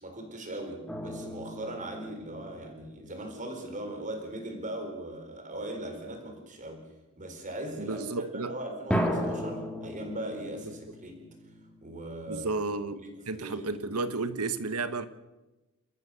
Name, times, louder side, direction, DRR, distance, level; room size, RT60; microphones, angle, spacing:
voice 1, 0.0-6.9 7.2-8.0 8.4-11.3 11.8-12.5 13.0-14.1, right 1 dB, 35° right, 4.2 m, -39 dB
sound 1, 0.9-4.0 8.9-12.5, equal, 5° left, 2.3 m, -36 dB
voice 2, 7.8-8.5 12.3-15.1, right 3 dB, 90° right, 1.3 m, -32 dB
30.0 x 14.0 x 6.4 m
head